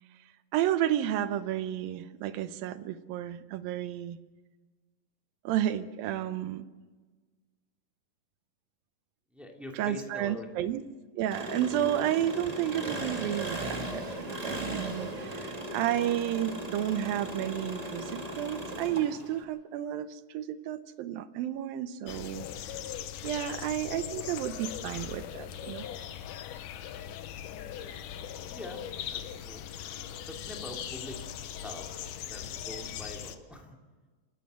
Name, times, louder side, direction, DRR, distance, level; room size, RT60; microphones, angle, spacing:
voice 1, 0.5-4.2 5.4-6.6 9.7-10.8 11.2-22.5 23.2-25.9, right 11 dB, 80° right, 12 dB, 2.6 m, -31 dB
voice 2, 9.3-10.7 28.5-28.8 29.1-29.7 30.3-31.9 32.3-33.8, left 1 dB, ahead, 1 dB, 2.0 m, -44 dB
Engine, 11.3-19.4, right 1 dB, 55° right, 0.4 m, -37 dB
sound 1, 22.1-33.4, left 10 dB, 70° left, 2.3 m, -40 dB
27.5 x 12.5 x 7.7 m, 1.4 s
omnidirectional pair, 4.1 m